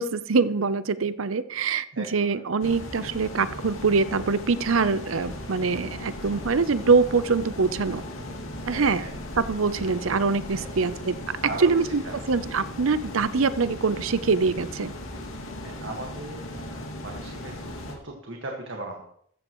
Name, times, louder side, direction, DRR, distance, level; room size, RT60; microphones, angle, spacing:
voice 1, 0.0-8.0 8.7-9.0 9.4-11.2 11.6-12.0 12.3-14.9, right 4 dB, 85° right, 14 dB, 0.7 m, -24 dB
voice 2, 1.9-2.4 8.6-9.1 10.5-10.7 11.4-12.1 15.6-19.0, right 2 dB, 65° right, 1 dB, 1.8 m, -38 dB
sound 1, 2.6-18.0, left 1 dB, 85° left, 2.3 m, -38 dB
sound 2, 4.9-11.1, equal, 35° right, 2.3 m, -46 dB
14.5 x 14.0 x 3.1 m, 0.65 s
head